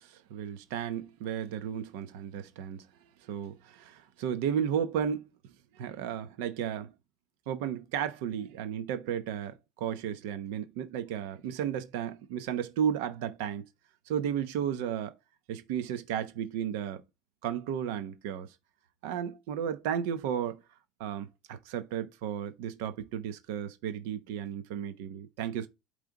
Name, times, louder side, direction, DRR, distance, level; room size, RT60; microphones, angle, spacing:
voice 1, 0.0-2.9 3.2-5.3 5.7-6.9 7.5-13.7 14.1-15.1 15.5-17.0 17.4-18.5 19.0-20.6 21.0-25.7, right 9 dB, 85° right, 0.9 m, -34 dB
8.8 x 3.3 x 3.8 m
cardioid pair, 160°, 0 cm